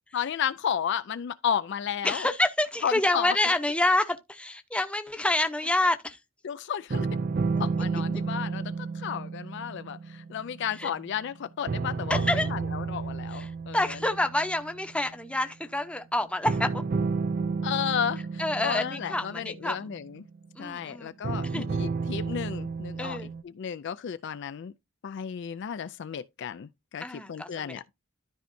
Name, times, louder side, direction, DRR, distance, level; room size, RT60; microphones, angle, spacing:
voice 1, 0.1-2.3 2.8-3.6 6.4-7.1 7.6-14.0 17.6-20.2 20.6-23.2 23.6-24.7 25.0-27.8, left 8 dB, 55° left, 0.4 m, -33 dB
voice 2, 2.0-6.2 8.1-8.2 10.8-10.9 12.1-12.5 13.3-16.7 18.4-19.9 20.6-21.1 21.4-21.7 23.0-23.3 27.0-27.8, left 1 dB, 5° left, 0.8 m, -28 dB
sound 1, 6.9-11.3 11.7-14.9 16.5-20.5 21.2-23.4, right 4 dB, 45° right, 0.4 m, -32 dB
13.0 x 4.5 x 2.6 m
head